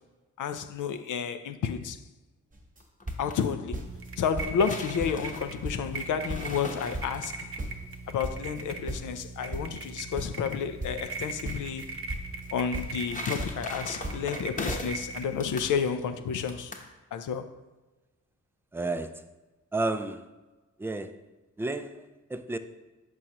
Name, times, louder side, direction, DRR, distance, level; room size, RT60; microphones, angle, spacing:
voice 1, 0.4-2.0 3.2-3.8 4.2-7.5 8.1-11.9 12.5-16.7 17.1-17.5, left 7 dB, 75° left, 0.5 m, -31 dB
sound 1, 2.5-2.8 3.1-4.1 4.4-4.7 5.0-6.7 6.9-9.9 10.2-12.5 12.7-13.8 14.0-14.4 14.7-14.8, right 1 dB, 25° right, 1.0 m, -37 dB
sound 2, 2.8-3.4 4.2-7.5 12.6-15.1 15.4-15.7 16.5-16.9, left 2 dB, 25° left, 0.9 m, -40 dB
sound 3, 3.8-15.7, right 3 dB, 45° right, 0.7 m, -40 dB
voice 2, 18.7-19.3 19.7-20.3 20.8-21.2 21.6-22.6, right 2 dB, 10° right, 0.3 m, -32 dB
6.1 x 5.3 x 2.9 m
cardioid pair, 75°, 31 cm